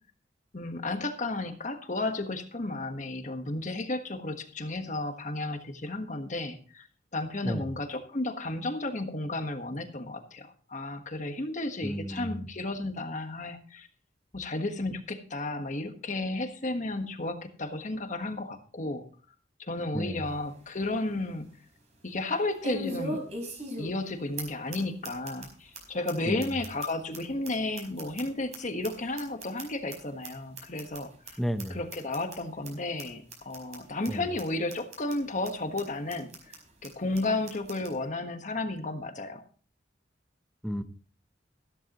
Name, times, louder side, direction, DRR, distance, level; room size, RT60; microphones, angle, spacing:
voice 1, 0.5-6.9 7.1-13.9 14.3-19.1 19.6-21.5 22.0-23.2 23.8-31.4 31.7-36.5 36.8-39.4, left 2 dB, 45° left, 7 dB, 1.4 m, -33 dB
voice 2, 11.8-12.5 19.9-20.2 26.3-26.6 31.4-31.8 34.1-34.3 40.6-40.8, equal, ahead, 9 dB, 0.9 m, -32 dB
sound 1, 20.3-20.4 20.8-20.9 22.6-24.1 24.4-24.5 24.7-24.8 25.0-25.5 25.7-25.8 26.1-26.2 26.4-28.6 28.8-29.9 30.2-30.3 30.6-31.0 31.3-31.4 31.6-31.7 31.9-32.4 32.6-32.7 33.0-33.1 33.3-33.8 34.0-34.1 34.4-34.5 34.7-35.1 35.4-35.5 35.8-35.9 36.1-36.6 36.8-36.9 37.1-37.2 37.5-37.9, right 1 dB, 40° right, 4.8 m, -38 dB
14.5 x 13.0 x 3.0 m, 0.41 s
head